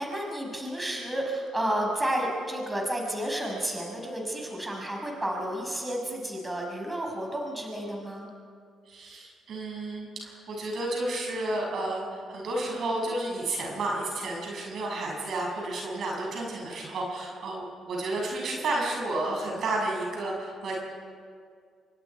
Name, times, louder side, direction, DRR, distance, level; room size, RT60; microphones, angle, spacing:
voice 1, 0.0-8.3, right 1 dB, 15° right, 0 dB, 6.0 m, -31 dB
voice 2, 8.9-20.8, right 2 dB, 60° right, -1 dB, 6.9 m, -31 dB
27.0 x 24.5 x 4.8 m, 2.1 s
hypercardioid pair, 45°, 0 cm